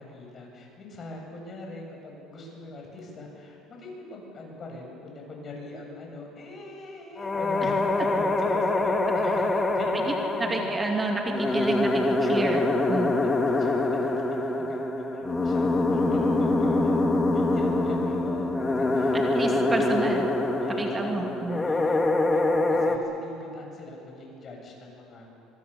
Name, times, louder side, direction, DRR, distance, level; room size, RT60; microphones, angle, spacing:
voice 1, 0.0-11.0 12.2-12.5 12.9-19.8 20.6-21.1 21.6-25.3, left 2 dB, 40° left, 0 dB, 7.6 m, -41 dB
sound 1, 7.2-23.0, left 2 dB, 20° left, 2.3 m, -25 dB
voice 2, 10.4-12.6 12.9-13.1 19.1-20.3 20.8-21.6, right 3 dB, 20° right, 2 dB, 2.4 m, -29 dB
24.0 x 23.5 x 7.0 m, 2.7 s
supercardioid pair, 100°, 0 cm